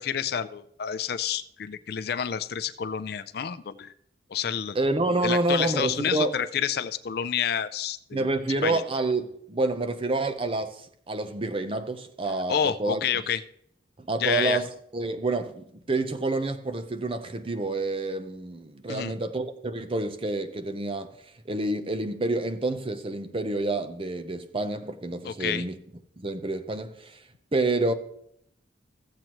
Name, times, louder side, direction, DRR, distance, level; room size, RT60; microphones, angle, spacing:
voice 1, 0.0-3.9 4.3-4.8 5.2-8.8 12.5-13.4 14.2-14.6 18.9-19.1 25.2-25.6, left 8 dB, 60° left, 0.4 m, -29 dB
voice 2, 4.7-6.3 8.1-13.0 14.0-14.7 14.9-21.1 21.4-25.8 26.2-27.2 27.5-27.9, right 2 dB, 30° right, 0.6 m, -28 dB
15.0 x 7.8 x 3.0 m
head